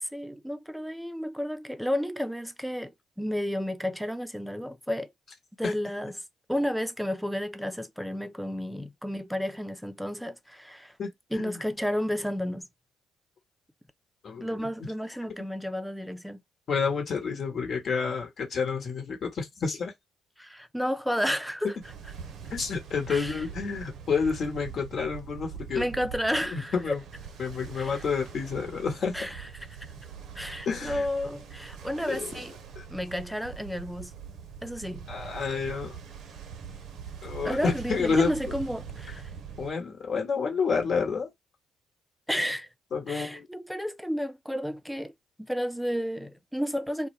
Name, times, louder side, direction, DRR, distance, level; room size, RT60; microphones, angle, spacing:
voice 1, 0.0-2.9 3.2-5.1 5.6-6.1 6.5-11.0 11.3-12.7 14.4-16.4 20.4-21.8 23.1-23.4 25.7-27.0 27.7-28.0 29.1-29.9 30.3-32.5 32.9-34.1 34.6-35.1 37.4-39.3 42.3-42.7 43.1-45.1 45.4-47.1, equal, ahead, 0.5 m, -32 dB
voice 2, 16.7-19.9 22.5-25.8 26.3-27.0 27.4-29.1 30.7-31.0 32.1-32.4 32.8-32.9 35.1-36.0 37.2-38.6 39.6-41.3 42.9-43.5, left 5 dB, 55° left, 1.0 m, -29 dB
Ocean, 21.8-39.7, right 7 dB, 65° right, 0.6 m, -43 dB
2.2 x 2.2 x 3.2 m
hypercardioid pair, 50°, 0 cm